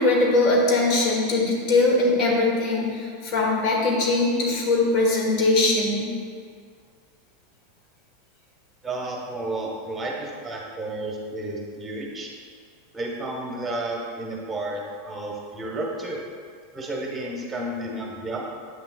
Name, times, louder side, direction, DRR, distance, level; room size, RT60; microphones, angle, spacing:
voice 1, 0.0-6.0, left 2 dB, 45° left, -2 dB, 1.4 m, -21 dB
voice 2, 8.8-12.3 12.9-16.2 16.7-18.4, right 2 dB, 15° right, -1 dB, 1.2 m, -32 dB
8.0 x 5.8 x 2.3 m, 2.1 s
figure-of-eight pair, 85°, 0 cm